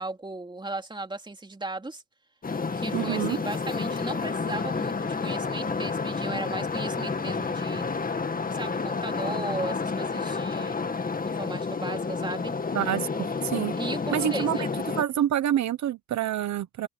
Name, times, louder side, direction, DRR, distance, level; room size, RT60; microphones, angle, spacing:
voice 1, 0.0-2.0 2.7-7.9 8.4-11.0 11.2-12.5 13.7-14.7, right 2 dB, 15° right, 3.0 m, -36 dB
sound 1, 2.4-15.0, left 4 dB, 30° left, 2.1 m, -30 dB
voice 2, 2.9-3.4 12.7-13.7 14.1-14.7 14.9-16.9, right 11 dB, 65° right, 1.2 m, -27 dB
open air
cardioid pair, 90°, 30 cm